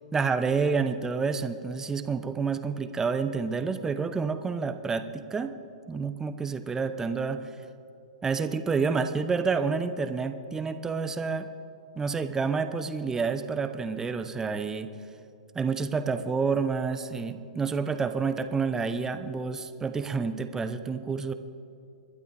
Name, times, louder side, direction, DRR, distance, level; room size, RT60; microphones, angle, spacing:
voice 1, 0.1-5.5 5.9-7.4 8.2-11.5 12.0-14.9 15.5-21.3, right 5 dB, 15° right, 9 dB, 0.9 m, -29 dB
28.5 x 12.0 x 3.4 m, 2.5 s
figure-of-eight pair, 115°, 4 cm